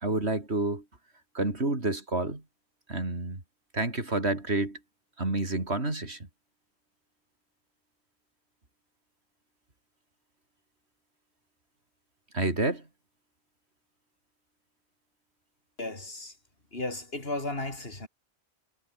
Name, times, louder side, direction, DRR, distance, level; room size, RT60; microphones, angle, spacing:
voice 1, 0.0-0.8 1.3-2.4 2.9-3.4 3.7-4.8 5.2-6.2 12.3-12.8, right 2 dB, 90° right, 4.5 m, -29 dB
voice 2, 15.8-16.4 16.7-18.1, left 2 dB, 65° left, 4.4 m, -34 dB
omnidirectional pair, 1.1 m